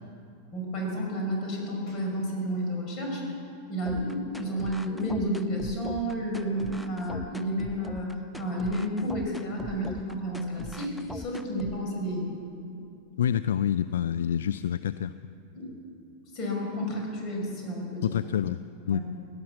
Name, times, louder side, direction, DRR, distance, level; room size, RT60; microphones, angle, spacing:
voice 1, 0.5-3.2 3.7-12.2 15.5-15.7 16.3-18.1 18.9-19.0, equal, 35° left, 0 dB, 5.0 m, -31 dB
sound 1, 3.8-11.8, left 1 dB, 5° left, 0.6 m, -41 dB
voice 2, 13.2-15.1 18.0-19.0, left 9 dB, 60° left, 14 dB, 0.3 m, -27 dB
17.0 x 11.5 x 7.4 m, 2.7 s
figure-of-eight pair, 90°, 0 cm